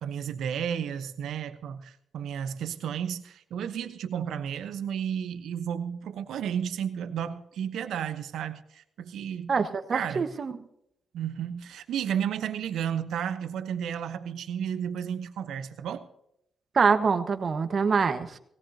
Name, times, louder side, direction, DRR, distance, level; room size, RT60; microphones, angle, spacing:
voice 1, 0.0-9.5 9.9-10.3 11.1-16.0, right 8 dB, 80° right, 9 dB, 1.0 m, -32 dB
voice 2, 9.5-10.5 16.7-18.4, right 5 dB, 55° right, 8 dB, 1.4 m, -25 dB
18.0 x 17.5 x 2.9 m, 0.76 s
supercardioid pair, 50°, 0 cm